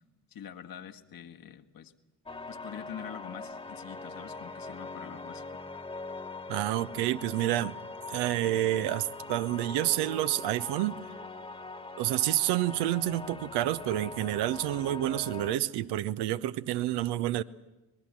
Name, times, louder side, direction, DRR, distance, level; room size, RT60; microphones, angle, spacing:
voice 1, 0.3-1.9 2.5-5.6, left 9 dB, 50° left, 1.6 m, -45 dB
sound 1, 2.3-15.6, left 3 dB, 15° left, 1.6 m, -42 dB
voice 2, 6.5-7.7 8.1-11.0 12.0-17.4, right 14 dB, 65° right, 0.9 m, -29 dB
24.5 x 20.5 x 7.4 m
hypercardioid pair, 50°, 44 cm